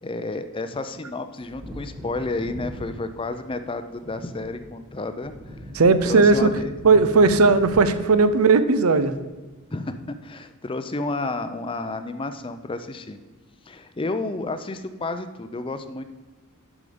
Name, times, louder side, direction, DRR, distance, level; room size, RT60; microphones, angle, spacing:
voice 1, 0.0-5.3 6.1-6.7 9.7-13.2 13.7-16.0, left 2 dB, 25° left, 9 dB, 0.5 m, -31 dB
Wind / Thunder, 1.4-9.6 9.9-10.0, equal, 15° right, 1.7 m, -41 dB
voice 2, 5.7-6.5 6.8-9.1, right 4 dB, 80° right, 12 dB, 0.6 m, -17 dB
11.0 x 5.0 x 5.0 m, 1.3 s
head